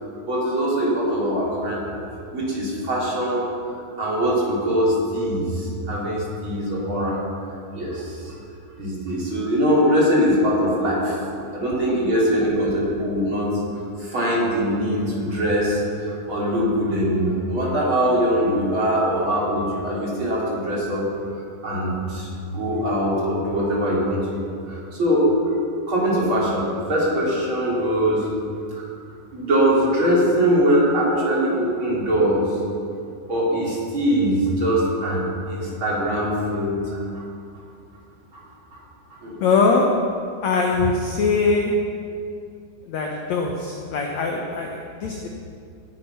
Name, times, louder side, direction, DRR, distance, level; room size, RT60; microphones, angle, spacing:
voice 1, 0.3-2.0 2.3-3.4 4.0-7.2 7.7-8.3 8.8-11.2 11.5-13.6 14.0-21.0 21.6-24.2 24.7-25.3 25.9-28.3 28.8-28.9 29.3-32.4 33.3-37.2 38.3-38.4 38.7-38.8 39.2-39.4, equal, 30° right, -6 dB, 4.2 m, -22 dB
voice 2, 39.4-39.9 40.4-41.7 42.9-45.3, left 4 dB, 70° left, 1 dB, 1.8 m, -22 dB
18.5 x 10.0 x 5.7 m, 2.5 s
omnidirectional pair, 4.4 m